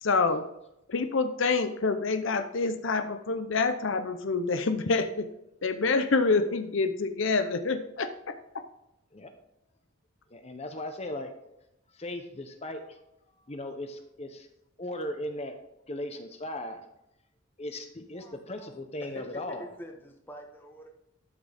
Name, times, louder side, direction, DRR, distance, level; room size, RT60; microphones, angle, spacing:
voice 1, 0.0-0.5 0.9-5.3 5.6-8.6, left 4 dB, 65° left, 9 dB, 0.6 m, -27 dB
voice 2, 10.3-11.3 11.9-13.0 13.5-14.5 14.8-15.6 15.9-16.8 17.6-19.7, left 1 dB, 30° left, 6 dB, 0.8 m, -37 dB
voice 3, 18.1-18.7 19.0-19.2 19.6-20.9, equal, 10° left, 2 dB, 1.2 m, -46 dB
12.0 x 6.2 x 3.5 m, 0.85 s
head